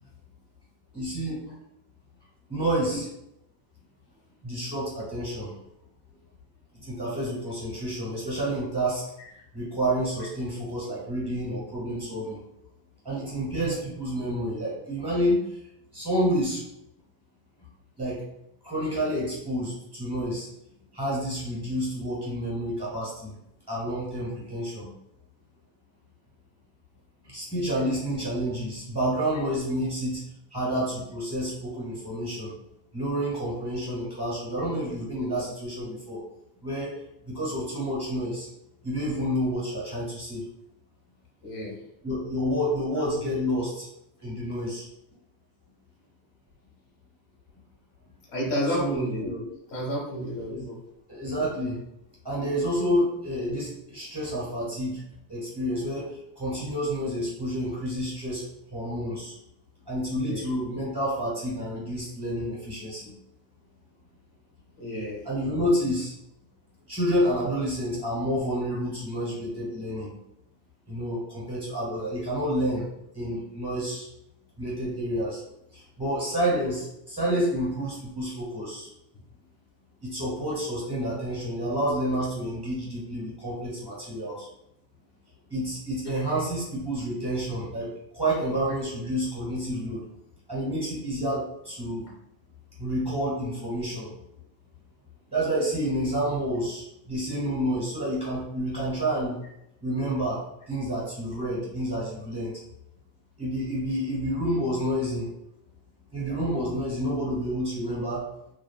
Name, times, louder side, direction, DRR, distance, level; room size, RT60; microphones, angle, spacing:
voice 1, 0.9-1.5 2.5-3.0 4.4-5.5 6.7-9.1 9.5-12.4 13.0-15.4 15.9-16.6 18.0-18.3 18.6-20.5 20.9-23.3 23.7-24.9 27.2-30.2 30.5-32.5 32.9-36.2 36.6-37.0 37.3-38.5 38.8-40.4 42.0-43.9 44.2-44.9 48.7-49.0 50.5-50.7 51.1-51.8 52.2-55.0 55.3-58.4 58.7-59.4 59.9-63.1 65.2-66.1 66.9-70.1 70.9-72.9 73.1-74.1 74.6-75.4 75.7-78.9 80.0-84.5 85.5-90.0 90.5-92.1 92.8-94.1 95.3-99.3 99.8-102.5 103.4-105.3 106.1-108.3, equal, 10° right, -7 dB, 0.9 m, -29 dB
voice 2, 41.4-41.7 48.3-49.4 49.7-50.8 60.1-60.4 64.8-65.2, equal, 15° left, -3 dB, 0.4 m, -30 dB
3.0 x 2.3 x 2.3 m, 0.81 s
cardioid pair, 165°, 46 cm